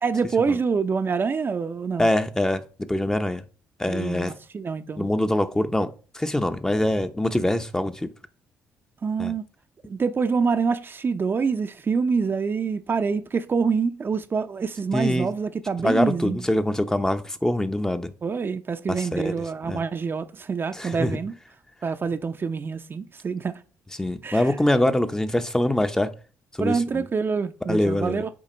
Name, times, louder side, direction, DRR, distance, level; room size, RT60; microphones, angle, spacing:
voice 1, 0.0-2.1 3.9-5.1 9.0-9.4 9.8-16.4 18.2-21.3 21.8-23.5 24.2-24.5 26.6-28.3, right 5 dB, 40° right, 0.6 m, -26 dB
voice 2, 2.0-2.6 2.9-3.4 3.8-4.3 5.0-8.1 9.2-9.3 14.9-15.3 15.8-18.1 18.9-19.3 19.7-19.8 20.7-21.2 24.0-26.1 26.6-27.0 27.7-28.2, left 1 dB, 10° left, 0.7 m, -24 dB
8.5 x 2.9 x 5.1 m
supercardioid pair, 65°, 6 cm